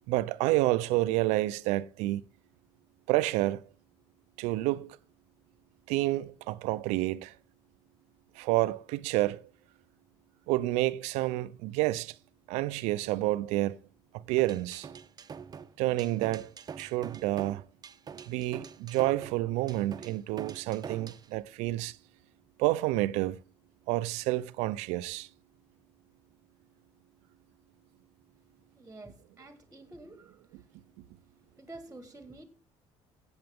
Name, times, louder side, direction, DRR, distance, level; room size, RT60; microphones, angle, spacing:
voice 1, 0.1-2.3 3.1-3.7 4.4-5.0 5.9-7.3 8.4-9.4 10.5-12.1 12.5-13.8 14.1-14.9 15.8-17.6 18.3-22.0 22.6-23.4 23.9-25.3, right 17 dB, 85° right, 0.5 m, -29 dB
sound 1, 14.4-21.3, right 6 dB, 35° right, 0.7 m, -44 dB
voice 2, 28.7-30.7 31.6-32.4, right 2 dB, 15° right, 1.6 m, -49 dB
16.0 x 7.9 x 3.6 m
supercardioid pair, 85°, 11 cm